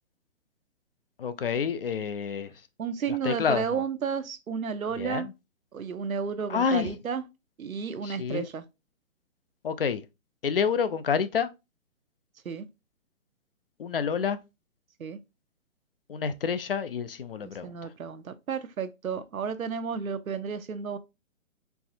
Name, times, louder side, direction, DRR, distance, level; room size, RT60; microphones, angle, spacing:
voice 1, 1.2-2.5 3.1-3.8 5.0-5.3 6.5-6.9 8.0-8.5 9.6-10.1 10.4-11.5 13.8-14.4 16.1-17.9, left 6 dB, 45° left, 0.4 m, -28 dB
voice 2, 2.8-5.3 5.7-7.2 7.6-8.6 12.4-12.7 15.0-15.2 17.4-21.0, right 6 dB, 85° right, 0.7 m, -32 dB
4.5 x 3.2 x 2.7 m
figure-of-eight pair, 140°, 41 cm